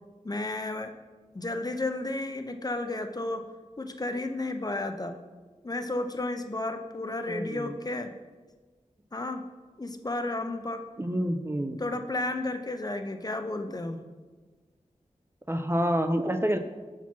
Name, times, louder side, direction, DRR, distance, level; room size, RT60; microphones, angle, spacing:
voice 1, 0.2-0.9 1.3-3.4 3.8-5.1 5.6-8.1 9.1-9.4 9.8-10.8 11.8-14.0, left 2 dB, 30° left, 6 dB, 0.5 m, -32 dB
voice 2, 7.3-7.8 11.0-11.8 15.5-16.6, equal, 20° right, 7 dB, 0.5 m, -28 dB
5.7 x 4.4 x 5.9 m, 1.3 s
wide cardioid pair, 70°, 13 cm